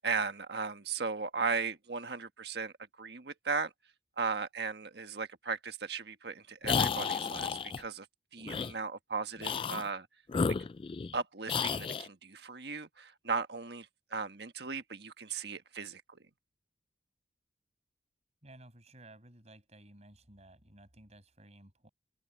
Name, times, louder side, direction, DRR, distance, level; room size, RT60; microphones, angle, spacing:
voice 1, 0.0-3.7 4.2-8.1 8.3-10.1 11.1-16.2, right 4 dB, 65° right, 1.5 m, -37 dB
sound 1, 6.6-7.8 8.5-8.7 9.4-9.9 10.3-11.2 11.5-12.1, left 5 dB, 30° left, 0.3 m, -32 dB
voice 2, 18.4-21.9, right 1 dB, 35° right, 6.6 m, -56 dB
open air
head